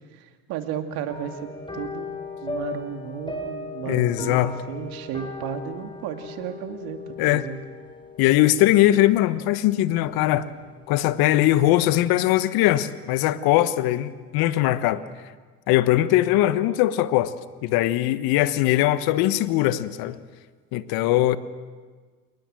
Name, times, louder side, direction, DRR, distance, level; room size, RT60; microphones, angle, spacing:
voice 1, 0.1-1.5 1.7-2.1 2.4-7.6, right 8 dB, 70° right, 2.5 m, -34 dB
sound 1, 1.1-10.7 10.9-11.3 11.7-11.8, left 3 dB, 15° left, 5.2 m, -38 dB
voice 2, 3.9-4.5 7.2-7.4 8.2-10.5 10.9-15.0 15.7-17.3 17.6-20.2 20.7-21.4, left 14 dB, 75° left, 1.2 m, -20 dB
29.0 x 19.5 x 7.7 m
hypercardioid pair, 65°, 37 cm